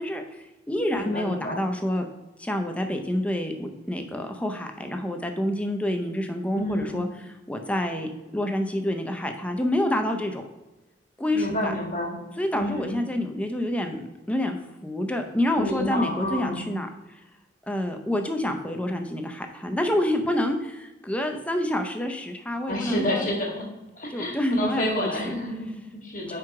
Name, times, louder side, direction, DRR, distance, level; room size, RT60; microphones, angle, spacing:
voice 1, 0.0-2.0 2.4-7.1 7.5-10.4 11.2-11.7 12.4-14.6 14.8-16.9 17.7-23.2 24.1-25.3, left 1 dB, 5° left, 5 dB, 0.5 m, -27 dB
voice 2, 0.9-1.7 6.5-7.1 11.3-12.2 12.5-13.0 15.6-16.6 22.7-23.7 24.0-26.4, left 1 dB, 40° left, -1 dB, 1.5 m, -29 dB
4.9 x 4.6 x 4.7 m, 1.1 s
head